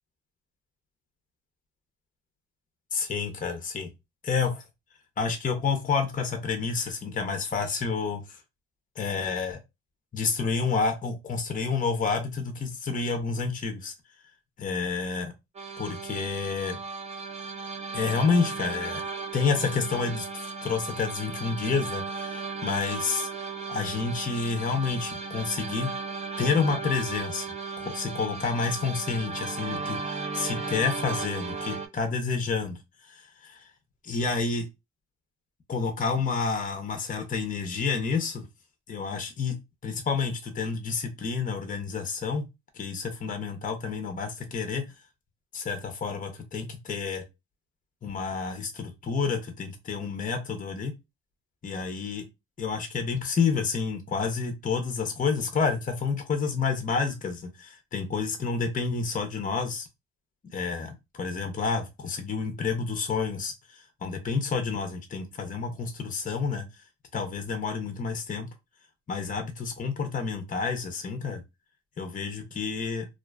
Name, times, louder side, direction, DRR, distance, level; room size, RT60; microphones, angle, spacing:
voice 1, 2.9-3.9 4.2-4.6 5.2-8.4 9.0-9.6 10.1-13.9 14.6-15.3 15.8-16.8 17.9-19.0 19.3-23.3 23.7-25.9 26.4-27.5 27.8-30.0 30.3-32.8 33.1-33.6 34.0-34.7 35.7-38.4 38.9-42.5 42.8-44.9 45.5-47.2 48.0-50.9 51.6-52.3 52.6-59.9 60.5-66.7 67.1-68.5 69.1-71.4 72.0-73.1, left 5 dB, 25° left, 0.6 m, -29 dB
sound 1, 15.5-31.9, right 4 dB, 25° right, 0.4 m, -35 dB
2.4 x 2.3 x 2.2 m
cardioid pair, 90°, 30 cm